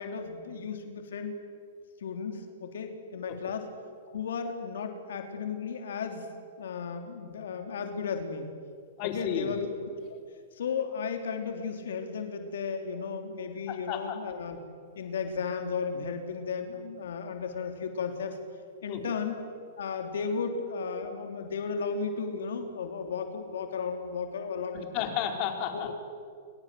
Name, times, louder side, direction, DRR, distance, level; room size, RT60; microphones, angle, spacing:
voice 1, 0.0-1.3 2.0-3.7 4.1-6.3 6.6-8.5 9.0-9.7 10.1-10.2 10.5-14.6 14.9-18.4 18.8-19.4 19.8-25.1 25.7-25.9, left 5 dB, 75° left, 5 dB, 3.2 m, -34 dB
voice 2, 9.0-9.6 13.7-14.2 18.9-19.0 24.9-25.9, left 8 dB, 45° left, 4 dB, 4.8 m, -32 dB
30.0 x 25.0 x 7.7 m, 2.2 s
hypercardioid pair, 120°, 0 cm